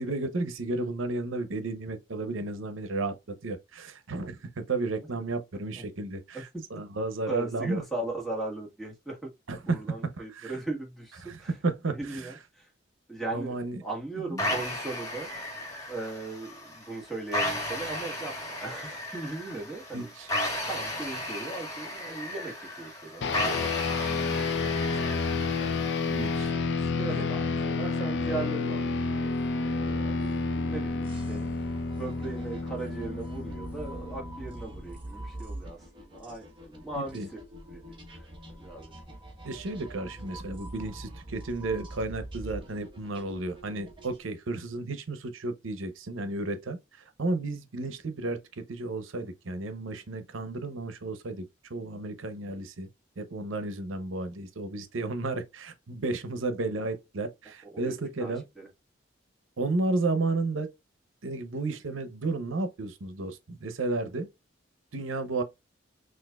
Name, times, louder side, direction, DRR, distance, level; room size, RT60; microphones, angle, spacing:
voice 1, 0.0-3.1 3.4-7.8 9.5-10.5 11.2-12.3 13.3-13.8 14.3-14.4 19.9-20.3 26.1-26.6 27.1-27.3 37.0-37.3 39.4-46.8 47.2-52.9 53.2-58.4 59.6-60.7 61.2-64.3 64.9-65.4, right 2 dB, 90° right, 0.7 m, -33 dB
voice 2, 7.3-9.3 9.7-11.5 11.9-12.7 13.1-15.3 15.9-20.3 20.7-26.1 26.8-37.4 37.7-38.3 38.6-38.9 57.6-58.7, right 3 dB, ahead, 1.5 m, -39 dB
sound 1, 14.4-26.4, left 1 dB, 15° left, 1.4 m, -35 dB
sound 2, 23.2-34.9, left 4 dB, 60° left, 0.4 m, -30 dB
sound 3, 29.2-44.2, right 1 dB, 25° right, 1.1 m, -45 dB
6.3 x 2.5 x 2.3 m
head